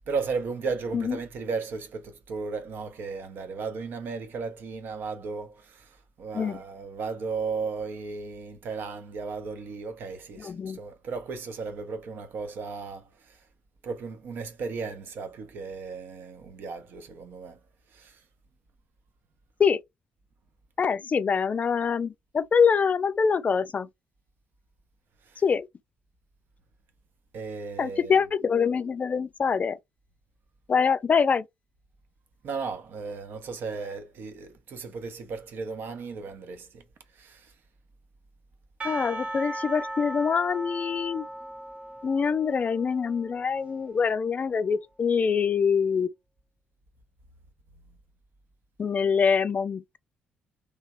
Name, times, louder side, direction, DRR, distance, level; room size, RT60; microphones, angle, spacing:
voice 1, 0.1-13.4 13.8-17.6 17.9-18.2 25.3-25.4 27.3-28.1 32.4-36.8 37.2-37.5, right 4 dB, 50° right, 1.0 m, -35 dB
voice 2, 10.4-10.8 19.6-19.8 20.8-23.9 25.4-25.7 27.8-29.8 30.7-31.4 38.8-41.2 42.0-46.1 48.8-50.0, left 6 dB, 35° left, 0.4 m, -25 dB
Percussion / Church bell, 38.8-44.0, right 1 dB, 25° right, 1.0 m, -38 dB
3.4 x 3.3 x 4.3 m
figure-of-eight pair, 45°, 4 cm